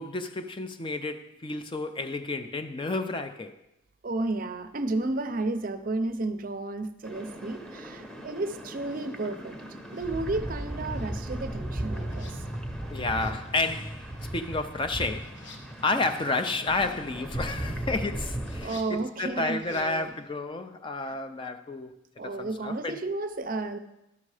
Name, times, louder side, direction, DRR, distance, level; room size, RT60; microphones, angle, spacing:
voice 1, 0.0-3.6 12.9-15.4 15.8-21.9 22.2-23.0, left 3 dB, 25° left, 0.4 m, -31 dB
voice 2, 4.0-9.6 9.9-12.4 18.6-20.1 22.2-23.8, right 2 dB, 45° right, 0.5 m, -32 dB
sound 1, 7.0-18.7, right 1 dB, 5° left, 0.9 m, -36 dB
sound 2, 8.9-9.1 9.9-10.6 10.9-20.3, left 3 dB, 70° left, 1.2 m, -55 dB
12.0 x 6.4 x 4.8 m
head